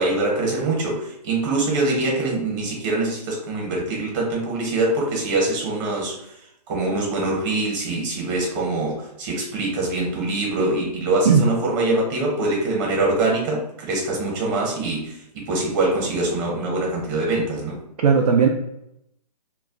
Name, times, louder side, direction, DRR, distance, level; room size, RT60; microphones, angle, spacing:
voice 1, 0.0-6.1 6.7-17.8, right 2 dB, 30° right, -1 dB, 0.9 m, -24 dB
voice 2, 18.0-18.5, right 6 dB, 65° right, 1 dB, 0.4 m, -16 dB
2.3 x 2.1 x 3.6 m, 0.80 s
hypercardioid pair, 150°, 21 cm